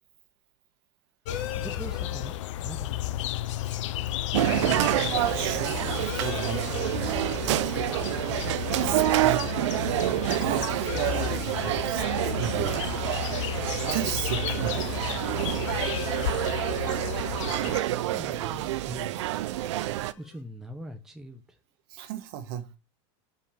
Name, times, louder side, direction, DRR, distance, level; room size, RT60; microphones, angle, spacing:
sound 1, 1.2-17.8, left 13 dB, 85° left, 0.5 m, -33 dB
sound 2, 1.3-20.4, left 9 dB, 50° left, 1.8 m, -46 dB
voice 1, 1.6-3.1 17.6-19.4 20.2-21.6, equal, 5° right, 0.8 m, -42 dB
sound 3, 4.3-20.1, right 15 dB, 75° right, 0.7 m, -28 dB
voice 2, 5.1-7.8 8.7-9.5 10.3-12.9 13.8-15.0 21.9-22.7, right 9 dB, 50° right, 1.7 m, -34 dB
5.5 x 5.5 x 6.6 m
supercardioid pair, 160°, 15 cm